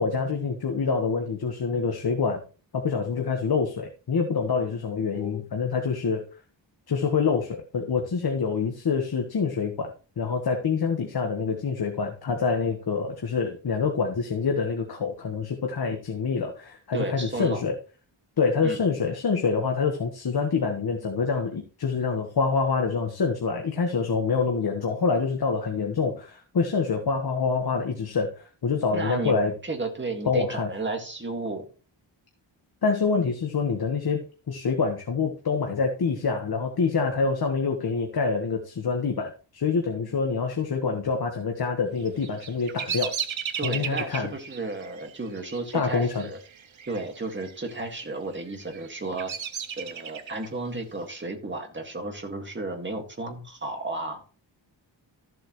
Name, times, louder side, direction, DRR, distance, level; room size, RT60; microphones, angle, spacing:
voice 1, 0.0-2.4 2.7-6.2 6.9-9.9 10.2-17.7 18.4-29.5 30.2-30.7 32.8-43.1 43.6-44.3 45.7-46.3, left 5 dB, 55° left, 3 dB, 1.5 m, -26 dB
voice 2, 16.9-17.6 18.6-18.8 28.9-29.4 29.6-31.7 43.6-46.4 46.9-49.3 49.8-54.2, right 2 dB, 25° right, 3 dB, 2.1 m, -33 dB
Bird vocalization bird call bird song, 42.0-47.0 47.3-47.9 48.5-50.5, right 8 dB, 80° right, 1.3 m, -35 dB
14.0 x 7.7 x 3.2 m, 0.37 s
wide cardioid pair, 160°, 46 cm